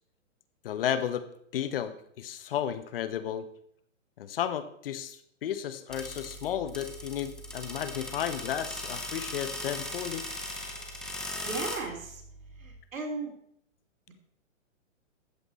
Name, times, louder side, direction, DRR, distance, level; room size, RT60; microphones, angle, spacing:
voice 1, 0.6-1.3 1.5-3.5 4.2-10.2, left 10 dB, 45° left, 12 dB, 1.0 m, -33 dB
sound 1, 5.9-12.8, left 1 dB, ahead, 0.6 m, -39 dB
voice 2, 11.4-12.2 12.6-13.3, right 3 dB, 90° right, 1 dB, 3.3 m, -36 dB
14.0 x 8.1 x 4.2 m, 0.68 s
hypercardioid pair, 155°, 39 cm